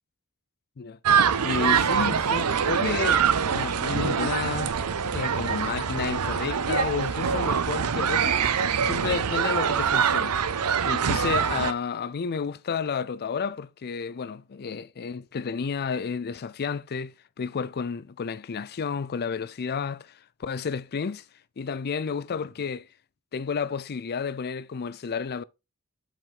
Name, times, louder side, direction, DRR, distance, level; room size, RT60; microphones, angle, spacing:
sound 1, 1.0-11.7, right 7 dB, 90° right, 0.6 m, -24 dB
voice 1, 1.4-3.2 3.5-4.7 5.0-8.4 8.8-10.4 10.9-21.2 21.6-22.9 23.3-25.4, left 5 dB, 45° left, 0.4 m, -31 dB
7.6 x 5.0 x 3.7 m
head